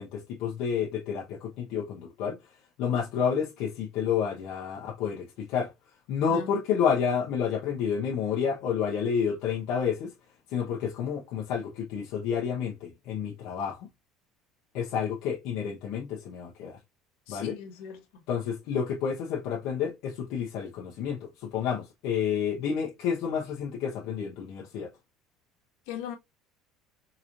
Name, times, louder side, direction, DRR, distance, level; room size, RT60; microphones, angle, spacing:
voice 1, 0.0-2.4 2.8-5.7 6.1-10.1 10.5-13.9 14.7-16.8 17.3-17.6 18.3-24.9, left 7 dB, 60° left, 0.8 m, -30 dB
voice 2, 17.3-18.0 25.9-26.2, left 8 dB, 85° left, 1.3 m, -38 dB
3.9 x 3.0 x 2.4 m
cardioid pair, 170°, 0 cm